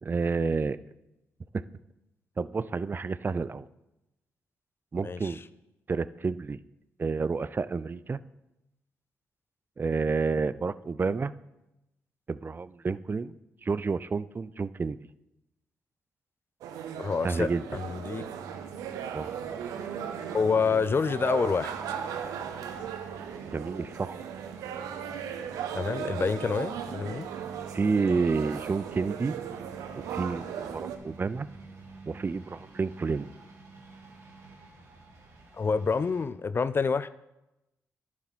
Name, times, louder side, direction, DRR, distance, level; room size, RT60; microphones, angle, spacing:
voice 1, 0.0-0.8 1.5-1.6 2.4-3.7 4.9-5.4 5.9-6.6 7.0-8.2 9.8-11.3 12.3-13.4 13.6-15.0 17.2-17.6 19.1-19.3 23.5-24.2 27.7-29.3 30.0-31.5 32.1-33.3, right 4 dB, 35° right, 17 dB, 0.4 m, -29 dB
voice 2, 5.0-5.3 17.0-18.2 20.3-21.7 25.7-27.3 35.6-37.1, left 5 dB, 40° left, 15 dB, 0.4 m, -27 dB
sound 1, 16.6-31.0, right 8 dB, 85° right, 0.7 m, -37 dB
sound 2, 18.4-36.2, right 3 dB, 55° right, 2.7 m, -49 dB
10.5 x 7.3 x 4.1 m, 0.93 s
supercardioid pair, 50°, 6 cm